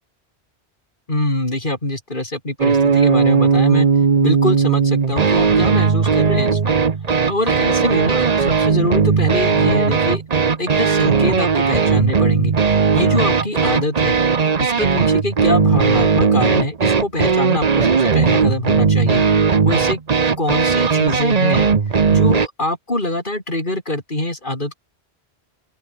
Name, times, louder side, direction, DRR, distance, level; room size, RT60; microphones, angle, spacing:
voice 1, 1.1-3.9 4.2-6.7 7.1-10.2 10.6-12.5 12.9-14.2 14.6-19.2 19.6-20.0 20.4-24.8, left 1 dB, 50° left, 6.0 m, -24 dB
sound 1, 2.6-22.5, right 5 dB, 40° right, 1.0 m, -17 dB
open air
omnidirectional pair, 1.1 m